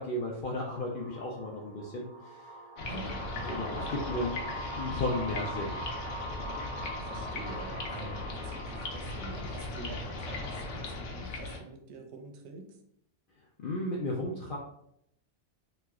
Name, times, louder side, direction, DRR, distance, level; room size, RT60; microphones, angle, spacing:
voice 1, 0.0-2.5 2.9-3.1 3.5-4.4 4.7-5.8 13.6-14.6, left 1 dB, 85° left, -2 dB, 0.4 m, -34 dB
sound 1, 0.8-10.2, right 1 dB, 55° right, 0.5 m, -43 dB
sound 2, 2.8-11.6, left 2 dB, 70° left, 0.9 m, -38 dB
voice 2, 2.9-3.7 7.0-12.8, right 3 dB, 75° right, 3 dB, 0.9 m, -45 dB
3.1 x 2.1 x 3.4 m, 0.74 s
omnidirectional pair, 1.4 m